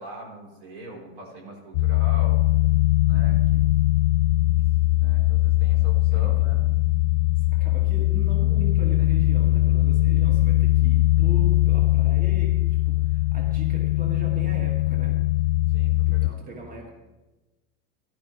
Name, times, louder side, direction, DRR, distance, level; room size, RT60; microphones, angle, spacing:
voice 1, 0.0-2.4 3.0-3.7 4.8-6.6 15.7-16.9, right 1 dB, 85° right, -2 dB, 4.9 m, -42 dB
sound 1, 1.7-16.3, left 18 dB, 65° left, 0.5 m, -21 dB
voice 2, 6.1-6.6 7.4-12.5 12.8-15.2 16.1-16.9, right 1 dB, 25° right, -1 dB, 2.7 m, -40 dB
16.5 x 12.0 x 3.5 m, 1.1 s
supercardioid pair, 120°, 32 cm